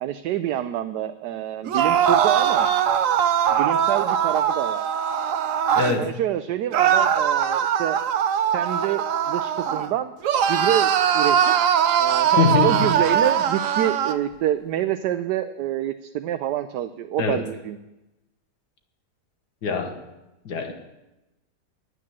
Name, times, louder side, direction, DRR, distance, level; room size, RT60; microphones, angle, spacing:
voice 1, 0.0-2.7 3.5-4.8 6.0-8.0 8.5-10.1 10.5-11.5 12.0-17.8, right 11 dB, 80° right, 9 dB, 1.2 m, -27 dB
sound 1, 1.6-6.0 6.7-9.9 10.2-14.2, right 8 dB, 60° right, 1.0 m, -21 dB
voice 2, 5.8-6.1 12.4-12.9 17.2-17.4 19.6-20.0 20.5-20.7, left 5 dB, 70° left, 5 dB, 1.9 m, -23 dB
11.0 x 9.7 x 7.4 m, 0.99 s
omnidirectional pair, 1.8 m